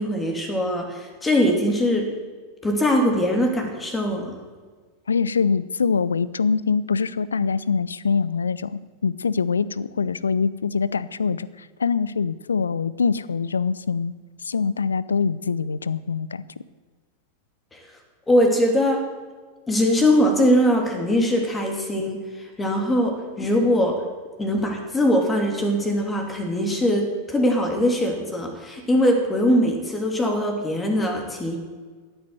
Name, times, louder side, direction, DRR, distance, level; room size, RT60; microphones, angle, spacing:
voice 1, 0.0-2.1 2.6-4.3 18.3-19.0 19.7-22.2 22.6-24.0 24.4-31.6, equal, 15° left, 2 dB, 3.0 m, -21 dB
voice 2, 5.1-14.2 14.4-16.5, left 5 dB, 70° left, 19 dB, 0.5 m, -24 dB
15.0 x 9.1 x 8.0 m, 1.5 s
figure-of-eight pair, 90°, 0 cm